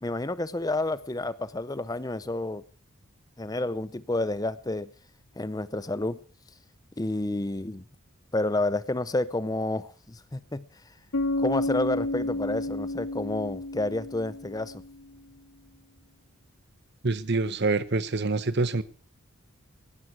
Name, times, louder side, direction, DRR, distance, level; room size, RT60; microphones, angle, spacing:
voice 1, 0.0-2.6 3.4-4.9 5.4-6.2 7.0-7.8 8.3-10.6 11.4-14.7, left 2 dB, 15° left, 16 dB, 0.6 m, -30 dB
Bass guitar, 11.1-15.0, left 2 dB, 85° left, 1.6 m, -31 dB
voice 2, 17.0-18.8, right 3 dB, 50° right, 14 dB, 0.9 m, -26 dB
17.5 x 13.0 x 4.7 m, 0.43 s
head